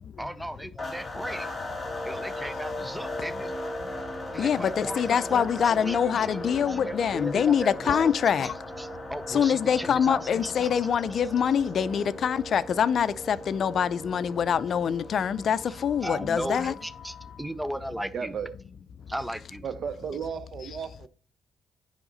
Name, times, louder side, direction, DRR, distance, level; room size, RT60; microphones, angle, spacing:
voice 1, 0.2-1.5 2.0-3.5 4.3-8.1 8.8-10.7 15.7-15.8 16.0-18.3 19.1-19.6, equal, 5° right, 0.5 m, -36 dB
sound 1, 0.8-17.5, left 1 dB, 20° left, 1.5 m, -38 dB
voice 2, 3.8-8.5 9.3-16.7, left 8 dB, 55° left, 0.4 m, -25 dB
voice 3, 18.1-18.5 19.6-21.1, right 7 dB, 55° right, 0.8 m, -34 dB
9.7 x 3.6 x 4.0 m
cardioid pair, 90°, 0 cm